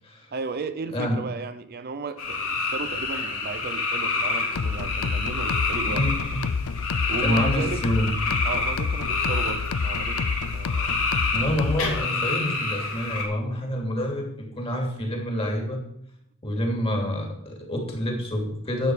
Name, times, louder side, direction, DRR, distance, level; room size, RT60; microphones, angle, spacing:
voice 1, 0.3-6.1 7.1-7.8 8.4-11.0, right 4 dB, 45° right, 11 dB, 0.6 m, -34 dB
sound 1, 2.2-13.2, left 3 dB, 65° left, 3.1 m, -28 dB
sound 2, 4.6-12.1, left 5 dB, 90° left, 0.5 m, -29 dB
voice 2, 5.8-6.4 7.2-8.1 11.3-15.8 16.4-18.9, equal, 25° left, 2 dB, 3.0 m, -27 dB
11.5 x 8.5 x 5.0 m, 0.76 s
head